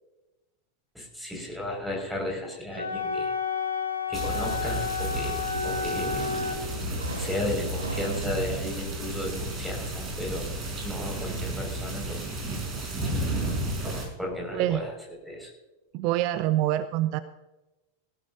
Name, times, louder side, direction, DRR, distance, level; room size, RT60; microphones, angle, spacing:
voice 1, 0.9-3.3 4.1-6.3 7.2-12.4 14.2-14.9 15.2-15.5, left 1 dB, ahead, 0 dB, 5.7 m, -34 dB
Wind instrument woodwind instrument, 2.7-6.6, left 5 dB, 90° left, 2.6 m, -30 dB
sound 1, 4.1-14.1, right 2 dB, 25° right, 5.4 m, -33 dB
sound 2, 4.9-13.0, equal, 75° right, 2.0 m, -39 dB
voice 2, 14.5-14.8 15.9-17.2, right 14 dB, 45° right, 13 dB, 0.6 m, -25 dB
19.0 x 16.0 x 2.7 m, 1.0 s
figure-of-eight pair, 90°, 0 cm